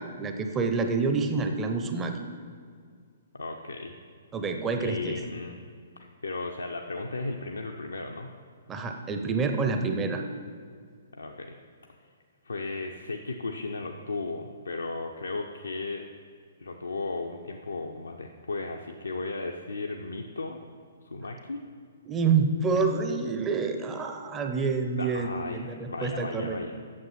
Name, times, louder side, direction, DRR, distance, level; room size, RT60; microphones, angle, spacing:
voice 1, 0.0-2.2 4.3-5.2 8.7-10.2 22.1-26.6, right 4 dB, 15° right, 5 dB, 0.6 m, -28 dB
voice 2, 3.3-3.9 4.8-5.6 6.2-8.3 11.1-11.5 12.4-16.0 16.6-20.6 21.0-21.6 25.0-26.8, left 3 dB, 75° left, 2 dB, 0.6 m, -35 dB
8.7 x 7.2 x 5.8 m, 2.2 s
figure-of-eight pair, 120°, 0 cm